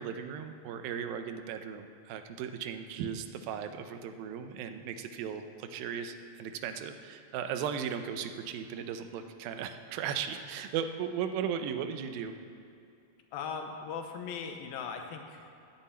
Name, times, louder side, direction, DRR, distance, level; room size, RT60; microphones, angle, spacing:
voice 1, 0.0-12.3, right 8 dB, 80° right, 8 dB, 2.5 m, -37 dB
voice 2, 13.3-15.5, left 6 dB, 85° left, 4 dB, 2.7 m, -39 dB
9.7 x 7.3 x 8.8 m, 2.6 s
omnidirectional pair, 4.2 m